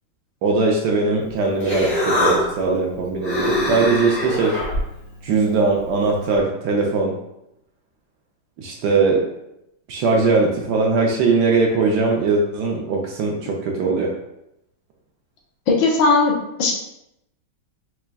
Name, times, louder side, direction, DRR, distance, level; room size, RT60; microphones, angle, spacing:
voice 1, 0.4-4.6 5.2-7.2 8.6-9.3 9.9-14.1, right 3 dB, 70° right, 0 dB, 1.1 m, -20 dB
Human voice, 1.2-6.4, left 1 dB, 30° left, 1.5 m, -25 dB
voice 2, 15.7-16.3 16.6-16.7, left 3 dB, 80° left, 0 dB, 1.5 m, -17 dB
4.5 x 3.2 x 2.2 m, 0.84 s
omnidirectional pair, 2.1 m